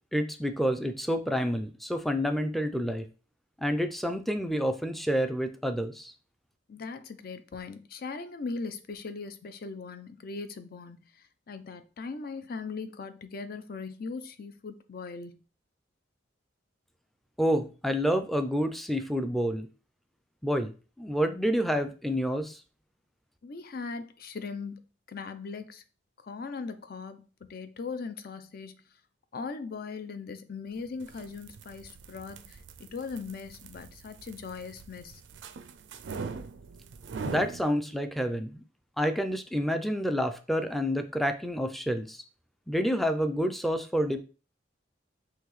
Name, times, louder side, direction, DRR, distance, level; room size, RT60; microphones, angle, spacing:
voice 1, 0.1-3.1 3.6-6.1 17.4-19.7 20.4-22.6 37.2-38.6 39.0-42.2 42.7-44.2, equal, ahead, 0.4 m, -28 dB
voice 2, 6.7-15.4 23.4-24.8 25.1-25.8 26.2-28.8 29.3-35.2, left 4 dB, 55° left, 0.5 m, -39 dB
sound 1, 30.9-37.6, right 5 dB, 70° right, 0.4 m, -42 dB
5.7 x 3.0 x 3.1 m
head